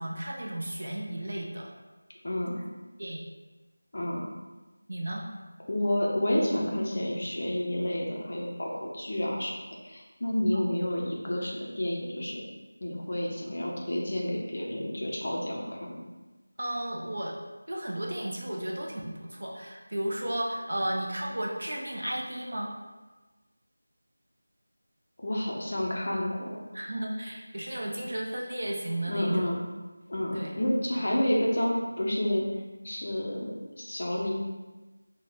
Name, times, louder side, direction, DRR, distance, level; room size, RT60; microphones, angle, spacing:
voice 1, 0.0-1.7 2.5-2.6 3.0-3.2 4.9-5.2 10.5-10.7 16.6-17.4 17.7-22.7 26.7-29.5 30.3-30.5 30.9-31.1, right 1 dB, 50° right, -1 dB, 0.6 m, -34 dB
voice 2, 2.2-2.6 3.9-4.2 5.7-9.6 9.8-12.4 12.8-16.0 25.2-26.6 29.1-29.6 30.1-32.4 32.8-34.3, left 1 dB, 35° left, -3 dB, 0.4 m, -30 dB
3.9 x 2.1 x 3.2 m, 1.2 s
figure-of-eight pair, 180°, 0 cm